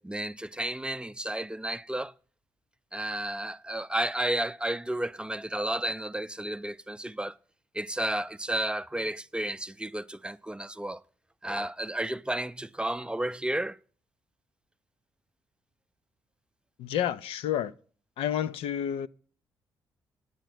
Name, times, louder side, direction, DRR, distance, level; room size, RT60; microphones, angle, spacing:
voice 1, 0.0-2.1 2.9-7.4 7.7-11.0 11.4-13.8, right 1 dB, 10° right, 0.5 m, -32 dB
voice 2, 16.8-17.7 18.2-19.1, left 10 dB, 75° left, 0.5 m, -29 dB
9.1 x 9.0 x 6.1 m
hypercardioid pair, 50°, 10 cm